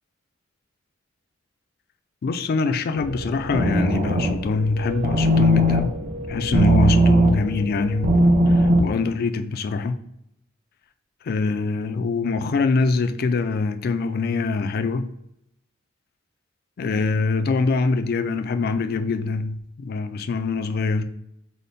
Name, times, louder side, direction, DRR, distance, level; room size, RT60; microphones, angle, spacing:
voice 1, 2.2-5.9 6.3-10.0 11.3-15.1 16.8-21.0, left 4 dB, 50° left, 0.3 m, -24 dB
sound 1, 3.0-8.8, right 1 dB, 40° right, 0.6 m, -20 dB
5.0 x 2.1 x 4.1 m
head